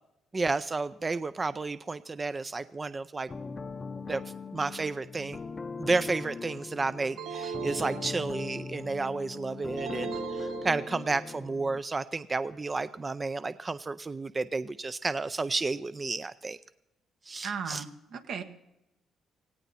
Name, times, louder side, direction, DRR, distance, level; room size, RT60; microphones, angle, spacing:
voice 1, 0.3-3.3 4.1-4.2 4.5-5.4 5.8-16.6 17.3-17.8, right 3 dB, 25° right, 13 dB, 0.5 m, -32 dB
sound 1, 3.3-11.8, left 4 dB, 30° left, 0.7 m, -40 dB
sound 2, 7.2-8.7 9.8-11.4, right 6 dB, 90° right, 1.0 m, -38 dB
voice 2, 17.4-18.4, right 6 dB, 75° right, 6 dB, 1.5 m, -36 dB
17.5 x 17.5 x 4.2 m, 0.91 s
cardioid pair, 90°, 0 cm